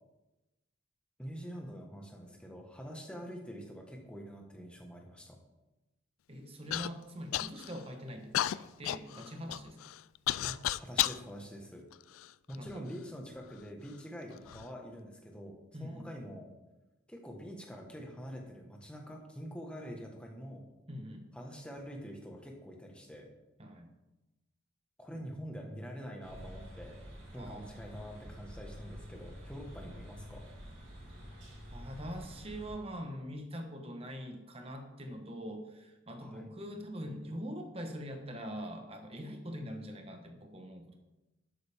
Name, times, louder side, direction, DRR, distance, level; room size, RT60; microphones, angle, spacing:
voice 1, 1.2-5.4 10.4-11.8 12.5-15.5 15.8-16.5 17.1-20.7 21.3-23.3 25.0-27.0 27.3-30.5 36.2-36.5, equal, 5° left, 1 dB, 1.4 m, -45 dB
voice 2, 6.3-9.9 12.6-12.9 15.7-16.1 20.9-21.3 23.6-23.9 25.2-25.3 27.3-27.7 31.7-41.0, equal, 30° right, 4 dB, 1.2 m, -43 dB
Human voice / Cough, 6.7-6.9 7.3-7.8 8.3-11.2 11.9-12.8 13.5-13.6 14.3-14.7, left 13 dB, 80° left, 0.3 m, -33 dB
sound 1, 26.2-32.8, equal, 65° right, 3.9 m, -48 dB
12.0 x 8.9 x 3.6 m, 1.0 s
head